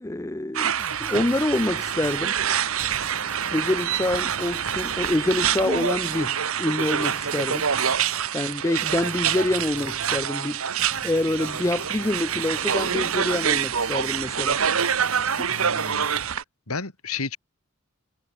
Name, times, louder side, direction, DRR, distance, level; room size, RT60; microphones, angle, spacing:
voice 1, 0.0-2.4 3.5-7.7 8.3-10.6 11.0-14.6 15.2-15.5, left 1 dB, 15° left, 0.5 m, -26 dB
sound 1, 0.5-16.4, right 8 dB, 75° right, 1.2 m, -26 dB
sound 2, 0.8-2.3 2.8-6.3 6.8-8.3 8.8-10.3 10.8-14.3 14.8-16.3, right 1 dB, 10° right, 3.7 m, -44 dB
voice 2, 15.5-16.1 16.7-17.4, left 4 dB, 90° left, 3.0 m, -32 dB
head